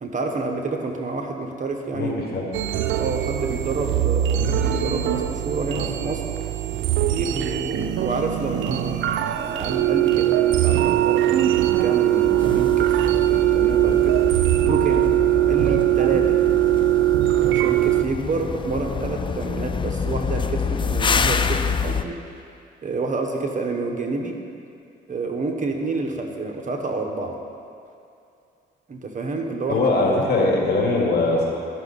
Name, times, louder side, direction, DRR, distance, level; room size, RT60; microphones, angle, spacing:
voice 1, 0.0-2.2 3.0-6.2 7.0-14.2 14.7-15.1 15.5-16.4 17.5-22.2 22.8-24.3 25.1-27.4 28.9-30.5, right 3 dB, 40° right, 3 dB, 1.0 m, -28 dB
voice 2, 1.9-2.5 29.7-31.5, left 2 dB, 55° left, -2 dB, 2.1 m, -21 dB
sound 1, 2.5-18.0, right 13 dB, 75° right, 0.4 m, -21 dB
sound 2, 12.2-22.0, left 6 dB, 25° left, 0.3 m, -27 dB
13.0 x 6.1 x 4.0 m, 2.5 s
cardioid pair, 90°, 20 cm